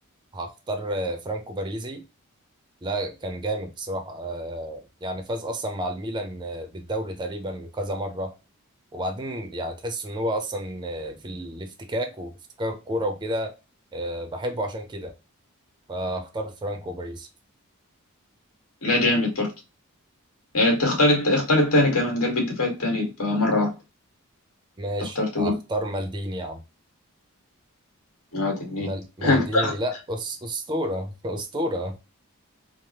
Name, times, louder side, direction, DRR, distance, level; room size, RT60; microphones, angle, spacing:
voice 1, 0.3-2.0 2.8-8.3 8.9-12.3 12.6-13.5 13.9-15.1 15.9-17.3 24.8-26.6 28.8-32.0, right 1 dB, 20° right, 0.5 m, -31 dB
voice 2, 18.8-19.5 20.5-23.7 25.1-25.5 28.3-28.9 29.2-29.7, left 2 dB, 80° left, 1.4 m, -22 dB
3.2 x 2.0 x 2.8 m
head